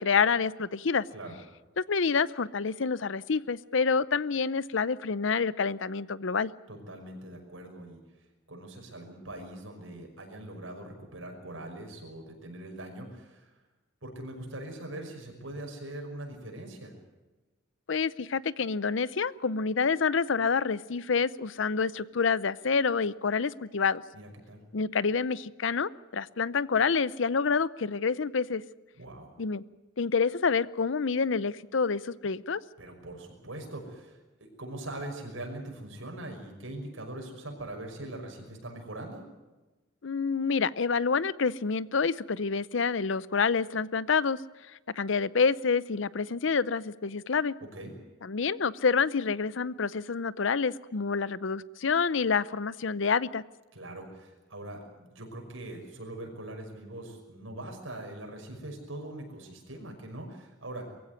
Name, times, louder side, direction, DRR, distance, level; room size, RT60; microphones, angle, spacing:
voice 1, 0.0-1.0 1.8-6.5 17.9-24.0 24.7-28.6 29.4-29.6 30.0-32.6 40.0-44.4 45.0-47.5 48.2-53.4, left 5 dB, 65° left, 19 dB, 0.6 m, -28 dB
voice 2, 6.7-8.0 8.5-13.5 14.0-16.9 24.1-24.6 29.0-29.3 32.8-34.2 34.6-39.2 47.7-47.9 53.7-60.8, right 1 dB, 80° right, 3 dB, 5.8 m, -42 dB
22.5 x 16.0 x 9.6 m, 1.1 s
head